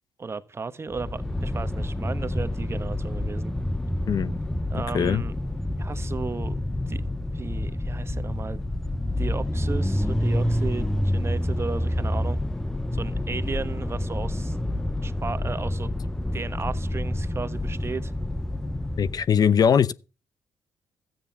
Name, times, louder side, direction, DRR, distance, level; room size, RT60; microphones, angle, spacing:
voice 1, 0.2-3.5 4.7-5.4 5.8-6.6 6.9-7.0 7.3-8.6 9.2-12.4 12.9-14.6 15.0-15.9 16.3-18.1, right 4 dB, 30° right, 1.2 m, -34 dB
sound 1, 0.9-19.3, left 1 dB, 5° left, 0.7 m, -28 dB
voice 2, 19.0-19.9, left 7 dB, 50° left, 0.7 m, -20 dB
13.5 x 9.3 x 5.8 m
cardioid pair, 75°, 8 cm